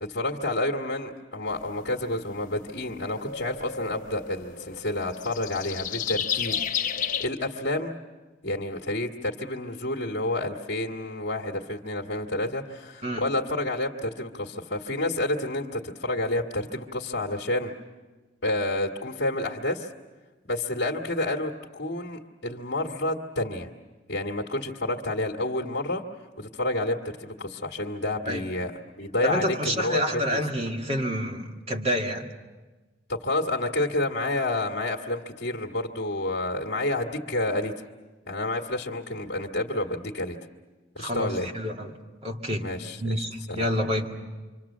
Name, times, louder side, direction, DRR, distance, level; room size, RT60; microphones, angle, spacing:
voice 1, 0.0-7.9 8.4-17.7 18.4-19.9 20.4-23.7 24.1-26.0 26.4-30.4 33.1-37.8 38.3-40.4 41.0-41.5 42.6-43.7, left 2 dB, 60° left, -2 dB, 1.7 m, -29 dB
sound 1, 1.5-7.3, left 8 dB, 45° left, 0.9 m, -33 dB
voice 2, 29.2-32.2 41.0-42.0 42.2-42.7 43.0-44.1, equal, 30° right, 2 dB, 2.0 m, -28 dB
27.5 x 25.0 x 7.3 m, 1.3 s
head